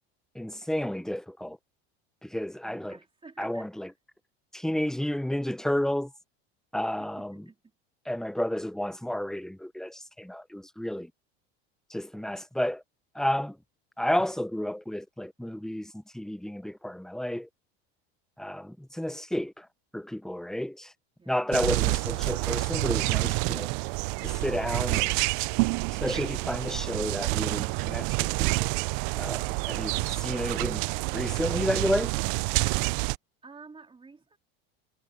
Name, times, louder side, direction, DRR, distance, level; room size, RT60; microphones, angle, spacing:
voice 1, 0.3-1.6 2.2-3.0 3.4-3.9 4.5-6.1 6.7-7.4 8.0-11.1 11.9-12.8 13.1-13.6 14.0-17.5 18.4-19.7 19.9-20.9 21.3-23.7 24.2-25.2 26.0-28.6 29.2-30.8 31.1-32.1, left 1 dB, ahead, 1.1 m, -31 dB
voice 2, 2.6-3.9 7.0-7.6 21.2-21.6 33.4-34.4, right 4 dB, 15° right, 3.6 m, -51 dB
sound 1, 21.5-33.2, right 27 dB, 65° right, 0.6 m, -28 dB
supercardioid pair, 100°, 32 cm